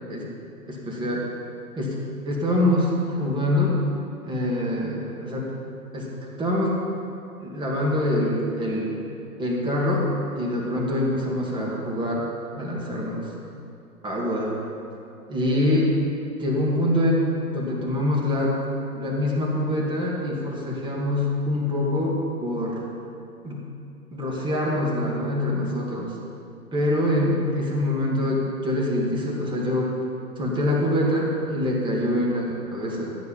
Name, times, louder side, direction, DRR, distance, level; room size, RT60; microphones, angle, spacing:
voice 1, 0.7-1.3 1.8-2.0 2.2-3.8 4.2-5.5 5.9-6.8 7.4-9.0 9.4-10.1 10.4-12.2 12.6-13.3 14.0-14.6 15.3-16.0 16.4-18.6 18.9-22.8 23.4-23.6 24.1-26.2 26.7-29.9 30.4-33.2, left 1 dB, 10° right, -3 dB, 2.1 m, -25 dB
13.0 x 9.7 x 5.7 m, 2.6 s
hypercardioid pair, 130°, 46 cm